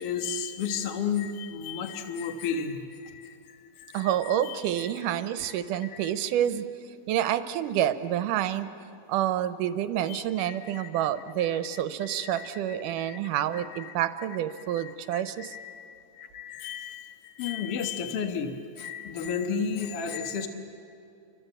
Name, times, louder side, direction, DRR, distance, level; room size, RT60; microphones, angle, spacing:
voice 1, 0.0-4.9 5.4-5.5 5.8-6.1 10.1-11.0 11.4-13.2 13.5-13.9 14.6-20.5, left 6 dB, 55° left, 5 dB, 1.8 m, -34 dB
voice 2, 3.9-8.7 9.1-15.6, right 11 dB, 75° right, 11 dB, 2.3 m, -28 dB
29.5 x 24.5 x 8.0 m, 2.7 s
omnidirectional pair, 4.2 m